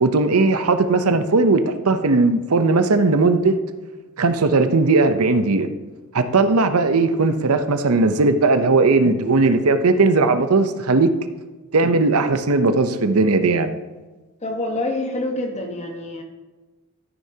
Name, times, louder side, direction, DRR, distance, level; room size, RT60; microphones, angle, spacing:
voice 1, 0.0-3.6 4.2-5.7 6.1-11.2 11.7-13.7, right 3 dB, 85° right, 9 dB, 0.7 m, -18 dB
voice 2, 14.4-16.2, left 2 dB, 30° left, 3 dB, 1.3 m, -26 dB
13.5 x 9.4 x 2.8 m, 1.2 s
head